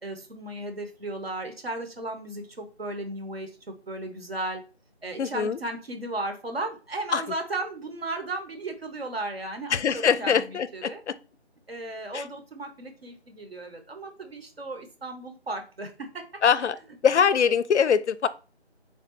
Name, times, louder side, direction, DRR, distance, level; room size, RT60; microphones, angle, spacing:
voice 1, 0.0-3.5 3.9-4.6 5.0-11.0 11.7-16.2 16.6-16.7, right 2 dB, 60° right, 0.8 m, -35 dB
voice 2, 5.2-5.6 7.1-7.2 9.7-11.1 12.1-12.2 16.4-16.8 17.0-18.3, left 7 dB, 80° left, 0.5 m, -23 dB
3.6 x 2.2 x 4.1 m
figure-of-eight pair, 175°, 34 cm